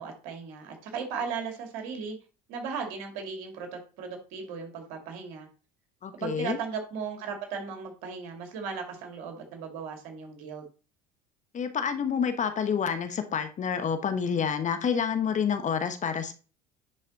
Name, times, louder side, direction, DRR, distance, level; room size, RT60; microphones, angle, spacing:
voice 1, 0.0-2.2 2.5-5.5 6.2-10.6, right 6 dB, 75° right, 3 dB, 2.4 m, -36 dB
voice 2, 6.0-6.6 11.5-16.3, left 7 dB, 35° left, 9 dB, 1.2 m, -28 dB
10.0 x 4.1 x 4.1 m, 0.36 s
supercardioid pair, 85°, 20 cm